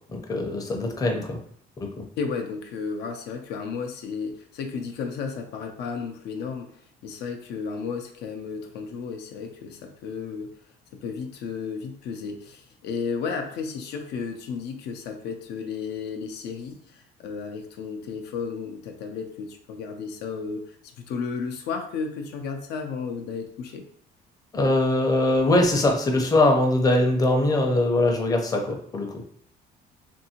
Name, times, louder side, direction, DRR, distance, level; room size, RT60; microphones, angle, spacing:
voice 1, 0.1-1.4 24.5-29.1, left 2 dB, 20° left, 2 dB, 0.6 m, -22 dB
voice 2, 2.2-6.7 7.0-10.5 10.9-23.8, left 5 dB, 80° left, 4 dB, 0.5 m, -33 dB
2.6 x 2.6 x 2.8 m, 0.63 s
cardioid pair, 110°, 17 cm